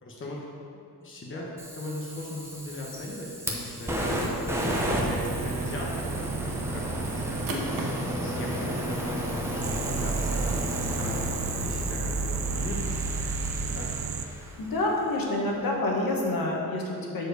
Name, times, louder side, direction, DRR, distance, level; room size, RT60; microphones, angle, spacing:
voice 1, 0.0-4.5 4.9-13.0 13.6-14.0, left 1 dB, 35° left, -3 dB, 1.1 m, -39 dB
Fire, 1.6-14.7, equal, 5° right, 0.9 m, -33 dB
sound 1, 4.8-7.6 9.6-14.3 15.9-16.3, right 6 dB, 85° right, 0.6 m, -34 dB
sound 2, 7.1-13.5, right 1 dB, 60° right, 1.2 m, -36 dB
voice 2, 14.6-17.3, left 2 dB, 65° left, -2 dB, 1.4 m, -28 dB
7.5 x 4.5 x 6.5 m, 2.5 s
wide cardioid pair, 160°, 37 cm